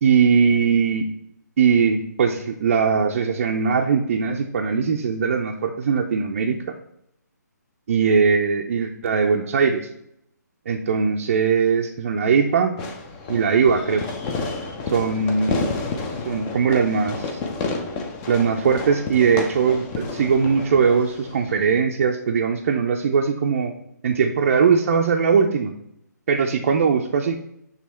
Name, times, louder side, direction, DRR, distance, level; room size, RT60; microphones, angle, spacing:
voice 1, 0.0-1.0 1.6-6.6 7.9-9.9 10.7-12.7 13.3-14.0 14.9-15.7 16.2-17.4 18.3-23.7 24.0-25.7 26.3-27.4, right 6 dB, 45° right, 0 dB, 0.5 m, -20 dB
Fireworks, 12.8-21.8, left 3 dB, 20° left, 0.7 m, -31 dB
7.3 x 3.4 x 4.2 m, 0.78 s
figure-of-eight pair, 140°, 10 cm